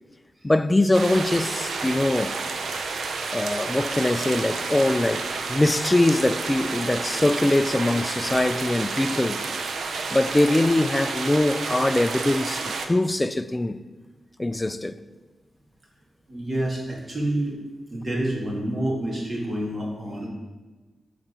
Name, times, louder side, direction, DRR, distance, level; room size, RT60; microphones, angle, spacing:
voice 1, 0.4-2.4 3.3-9.4 10.1-13.8 14.4-15.0, left 1 dB, 20° left, 0.4 m, -22 dB
sound 1, 0.9-12.9, right 4 dB, 80° right, 0.7 m, -30 dB
voice 2, 16.3-17.6 17.9-20.3, right 1 dB, 40° right, 2.4 m, -28 dB
7.3 x 4.0 x 6.1 m
cardioid pair, 70°, 0 cm